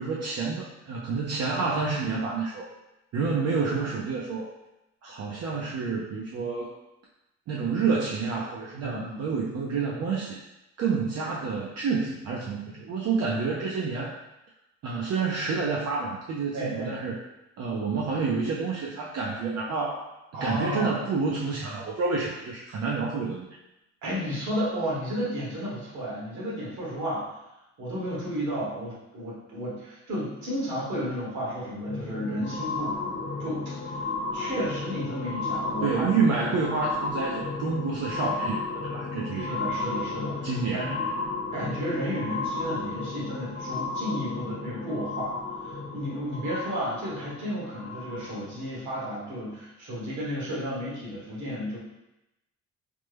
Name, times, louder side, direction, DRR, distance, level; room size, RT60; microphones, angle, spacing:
voice 1, 0.0-2.7 3.1-4.5 5.0-6.8 7.5-10.4 10.8-14.1 14.8-17.2 17.6-20.0 20.4-23.5 35.8-39.6 40.4-41.1, right 4 dB, 55° right, -3 dB, 0.5 m, -29 dB
voice 2, 8.8-9.3 16.5-16.9 20.3-21.0 24.0-27.3 27.8-34.0 34.3-36.3 39.3-41.0 41.5-51.8, equal, 75° right, -6 dB, 1.4 m, -33 dB
sound 1, 31.7-48.6 49.3-49.4, left 3 dB, 50° left, 1.0 m, -33 dB
3.2 x 2.0 x 3.3 m, 0.92 s
cardioid pair, 130°, 30 cm